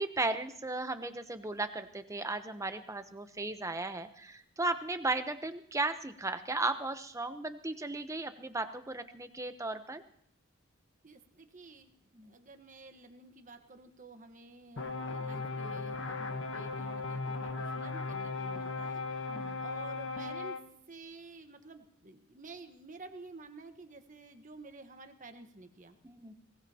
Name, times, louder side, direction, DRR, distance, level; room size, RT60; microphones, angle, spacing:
voice 1, 0.0-10.0 12.1-12.3 19.3-19.6 26.0-26.3, right 2 dB, 15° right, 9 dB, 0.8 m, -35 dB
voice 2, 11.0-19.0 19.6-20.6 20.9-26.0, right 3 dB, 40° right, 6 dB, 1.3 m, -51 dB
sound 1, 14.8-20.6, left 3 dB, 65° left, 1.2 m, -37 dB
21.5 x 18.5 x 2.9 m, 0.65 s
head